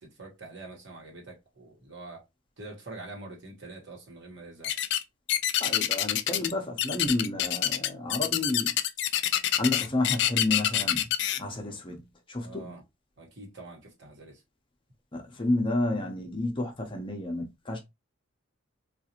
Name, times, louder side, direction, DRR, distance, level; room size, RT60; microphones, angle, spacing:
voice 1, 0.0-2.3 2.6-4.8 12.4-12.8 13.2-14.4, right 2 dB, 60° right, 1.2 m, -45 dB
sound 1, 4.6-5.0 5.3-6.5 6.8-11.4, left 12 dB, 55° left, 0.4 m, -26 dB
voice 2, 5.6-8.7 9.6-11.1 11.4-12.0 12.3-12.7 15.1-17.8, left 2 dB, 25° left, 0.7 m, -30 dB
3.9 x 2.4 x 2.8 m
head